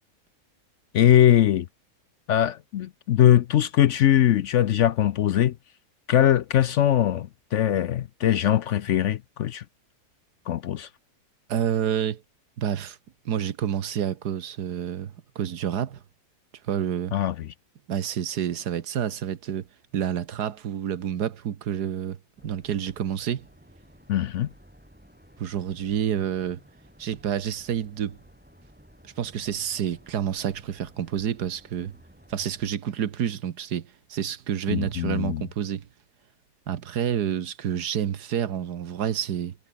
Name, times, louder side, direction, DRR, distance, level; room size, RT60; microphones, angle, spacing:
voice 1, 0.9-1.7 2.3-5.5 6.1-9.6 10.5-10.9 17.1-17.5 24.1-24.5 34.7-35.4, left 11 dB, 65° left, 0.8 m, -21 dB
voice 2, 11.5-12.2 12.6-13.0 13.2-16.0 16.7-17.1 17.9-19.7 19.9-22.2 22.4-23.5 25.4-26.6 27.0-28.2 29.2-31.9 32.3-35.9 36.7-39.5, right 9 dB, 90° right, 1.8 m, -28 dB
sound 1, 22.4-32.8, equal, 5° right, 6.4 m, -54 dB
omnidirectional pair, 1.7 m